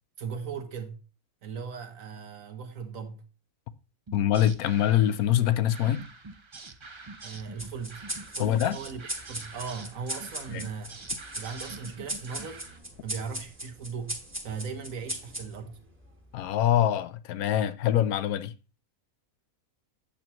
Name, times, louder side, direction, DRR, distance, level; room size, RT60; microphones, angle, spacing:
voice 1, 0.2-1.0 1.4-3.2 7.2-8.0 8.4-11.0 11.3-12.6 13.0-14.2 14.4-15.8, right 6 dB, 70° right, 1.4 m, -38 dB
voice 2, 4.1-6.0 8.4-8.8 10.5-10.6 16.3-18.5, left 11 dB, 90° left, 1.1 m, -24 dB
sound 1, 4.1-12.8, right 3 dB, 30° right, 0.5 m, -45 dB
sound 2, 7.6-16.5, right 1 dB, 10° right, 1.2 m, -39 dB
8.7 x 7.2 x 3.0 m
omnidirectional pair, 1.5 m